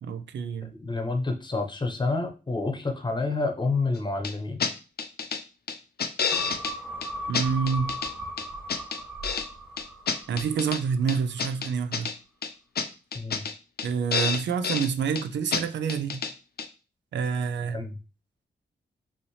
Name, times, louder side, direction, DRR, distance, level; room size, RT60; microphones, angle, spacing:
voice 1, 0.0-0.7 7.3-7.9 10.3-12.1 13.8-16.2 17.1-17.8, right 6 dB, 85° right, 0.4 m, -27 dB
voice 2, 0.8-4.7 13.1-13.4 17.6-18.0, left 3 dB, 25° left, 0.9 m, -28 dB
sound 1, 4.2-4.3 4.6-4.7 5.0-5.4 5.7-6.7 7.0-7.1 7.3-8.1 8.4-9.5 9.8-10.8 11.1-12.1 12.4-12.5 12.8-12.9 13.1-13.5 13.8-13.9 14.1-14.9 15.2-15.3 15.5-15.6 15.9-16.3 16.6-16.7, left 6 dB, 60° left, 0.6 m, -29 dB
sound 2, 6.3-11.0 11.4-11.5, right 1 dB, 5° right, 1.6 m, -38 dB
5.6 x 2.8 x 3.2 m
cardioid pair, 85°, 18 cm